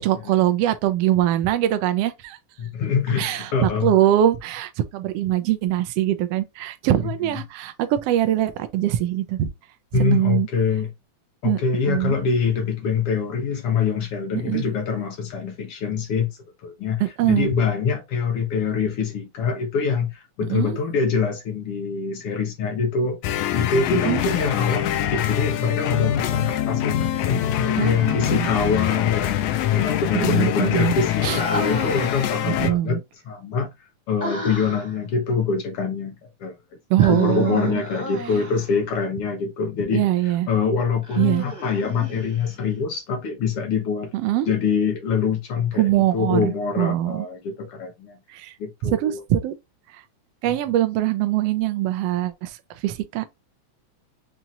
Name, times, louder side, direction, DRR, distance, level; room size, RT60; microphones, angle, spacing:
voice 1, 0.0-2.4 3.2-9.5 10.0-10.5 11.4-11.6 11.9-12.2 14.4-14.6 17.0-17.5 20.5-20.8 24.1-24.2 27.8-28.5 30.1-30.9 31.2-31.4 32.4-33.0 36.9-37.8 39.9-40.5 41.2-41.4 44.1-44.5 45.8-47.3 48.3-48.5 48.8-49.5 50.4-52.6 52.8-53.3, right 12 dB, 75° right, 1.5 m, -22 dB
voice 2, 2.6-3.9 7.3-7.4 9.9-10.9 11.4-16.3 16.6-17.0 17.3-23.2 23.5-33.7 34.1-36.6 37.1-44.1 44.5-45.9 46.1-48.2 48.6-49.2, left 5 dB, 60° left, 1.7 m, -24 dB
sound 1, 23.2-32.7, left 11 dB, 90° left, 2.0 m, -24 dB
Human voice, 28.0-28.9 31.4-32.7 34.2-35.0 37.0-38.8 41.0-42.6, left 1 dB, 5° right, 1.6 m, -33 dB
5.8 x 2.9 x 2.5 m
omnidirectional pair, 3.4 m